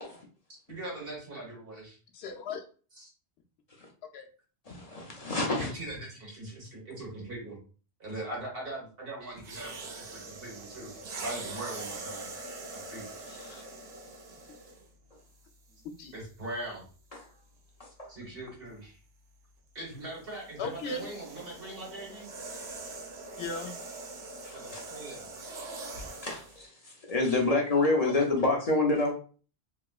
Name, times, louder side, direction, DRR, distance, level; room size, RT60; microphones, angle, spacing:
voice 1, 0.7-2.0 2.9-3.1 5.5-7.6 8.0-12.3 12.7-13.1 16.1-16.8 18.1-19.0 19.7-22.3 24.5-25.2, right 1 dB, 65° right, -2 dB, 1.5 m, -41 dB
voice 2, 2.1-2.6 4.1-4.3 13.3-13.7 16.0-16.1 20.6-21.1 23.4-23.7, left 3 dB, 80° left, 4 dB, 0.8 m, -37 dB
voice 3, 4.7-5.7 15.1-15.2 17.1-17.3 17.8-18.1 22.9-23.0 24.4-24.8 25.9-29.1, left 2 dB, 45° left, 0 dB, 0.6 m, -28 dB
sound 1, 9.4-14.9 15.7-15.9 19.9-26.6, right 2 dB, 85° right, 1.0 m, -43 dB
2.9 x 2.8 x 2.3 m, 0.39 s
omnidirectional pair, 1.0 m